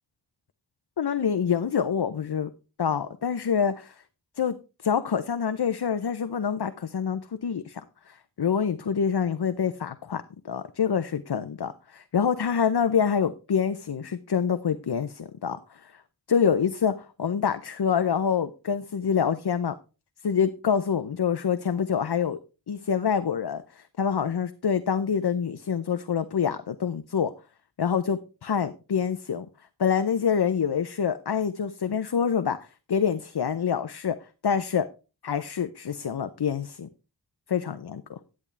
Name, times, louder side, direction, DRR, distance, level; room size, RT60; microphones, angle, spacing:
voice 1, 1.0-2.5 2.8-4.0 4.4-4.6 4.8-16.0 16.3-19.7 20.2-22.4 22.7-27.3 27.8-29.5 29.8-32.6 32.9-34.2 34.4-34.9 35.2-36.9 37.5-38.2, left 7 dB, 70° left, 0.6 m, -26 dB
10.5 x 8.6 x 3.3 m
wide cardioid pair, 55°, 41 cm